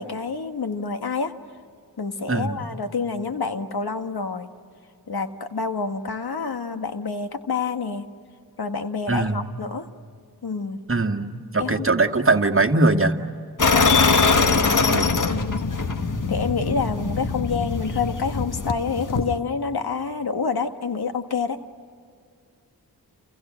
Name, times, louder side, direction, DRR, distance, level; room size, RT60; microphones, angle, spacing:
voice 1, 0.0-1.3 2.0-4.5 5.1-8.1 8.6-9.9 10.4-10.8 11.6-11.9 13.7-14.0 14.3-14.9 15.3-15.7 16.3-21.6, left 5 dB, 70° left, 7 dB, 1.7 m, -28 dB
voice 2, 2.3-2.6 9.1-9.5 10.9-13.2 14.9-15.2, right 3 dB, 35° right, 5 dB, 1.9 m, -21 dB
sound 1, 13.6-19.4, left 4 dB, 50° left, 1.6 m, -22 dB
30.0 x 29.5 x 6.4 m, 2.3 s
cardioid pair, 45°, 39 cm